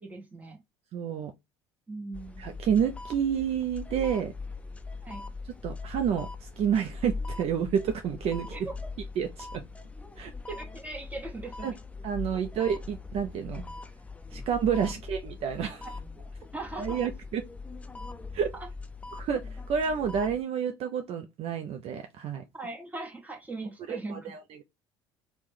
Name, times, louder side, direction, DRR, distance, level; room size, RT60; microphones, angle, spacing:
voice 1, 0.0-0.6 1.9-2.4 5.0-5.2 8.5-8.9 10.5-11.7 12.3-12.4 15.8-15.9 16.5-17.1 18.5-18.7 22.5-24.3, right 3 dB, 10° right, 1.2 m, -39 dB
voice 2, 0.9-1.3 2.4-4.3 5.6-8.5 9.2-9.6 10.2-10.3 11.6-11.7 12.0-13.6 14.3-15.9 16.8-17.5 18.3-18.5 19.1-22.4 23.9-24.6, right 8 dB, 50° right, 0.5 m, -29 dB
sound 1, 2.1-20.4, left 3 dB, 10° left, 0.4 m, -41 dB
2.9 x 2.1 x 3.5 m
hypercardioid pair, 65°, 13 cm